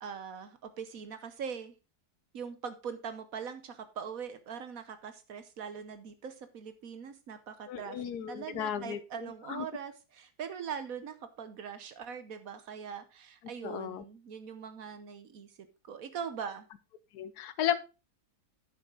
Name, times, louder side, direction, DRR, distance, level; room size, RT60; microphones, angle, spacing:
voice 1, 0.0-1.8 2.3-15.5 15.8-16.7, right 7 dB, 65° right, 10 dB, 1.3 m, -42 dB
voice 2, 7.7-9.6 13.6-14.0 17.1-17.8, left 10 dB, 80° left, 14 dB, 1.3 m, -34 dB
10.0 x 6.2 x 3.8 m, 0.29 s
omnidirectional pair, 1.7 m